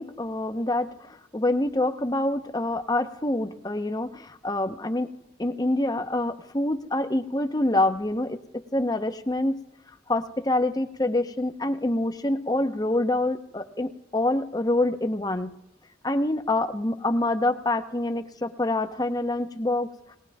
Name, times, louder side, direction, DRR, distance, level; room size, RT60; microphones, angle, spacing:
voice 1, 0.0-5.1 5.4-9.6 10.1-15.5 16.0-19.9, left 1 dB, 20° left, 9 dB, 0.8 m, -26 dB
20.0 x 19.5 x 3.5 m, 0.85 s
head